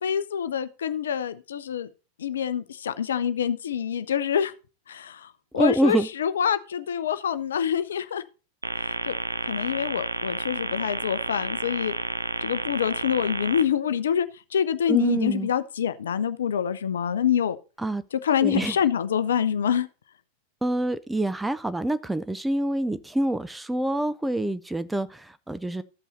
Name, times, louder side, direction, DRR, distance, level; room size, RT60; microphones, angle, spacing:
voice 1, 0.0-1.9 2.2-4.5 4.9-8.2 8.8-9.1 9.5-11.9 12.4-17.6 18.1-19.9, left 8 dB, 65° left, 0.6 m, -26 dB
voice 2, 5.5-6.1 14.9-15.5 17.8-18.0 18.4-18.7 20.6-25.8, right 1 dB, 5° right, 0.5 m, -26 dB
sound 1, 8.6-13.6, right 2 dB, 80° right, 0.5 m, -31 dB
13.5 x 5.5 x 4.1 m
figure-of-eight pair, 90°, 0 cm